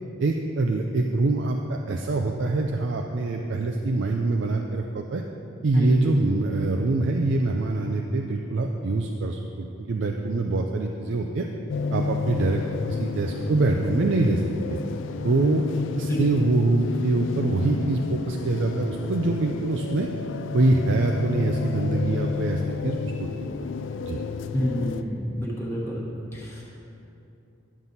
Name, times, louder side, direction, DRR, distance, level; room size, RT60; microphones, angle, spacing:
voice 1, 0.2-5.2 5.6-11.5 11.9-12.6 12.9-14.4 14.7-14.8 15.2-15.6 16.0-20.1 20.5-23.0 24.0-24.2, right 2 dB, 60° right, 2 dB, 0.4 m, -24 dB
sound 1, 11.7-25.0, left 4 dB, 65° left, 0.3 m, -31 dB
voice 2, 24.5-26.0 26.3-26.6, equal, 10° left, -5 dB, 1.2 m, -27 dB
11.0 x 7.3 x 4.0 m, 2.8 s
head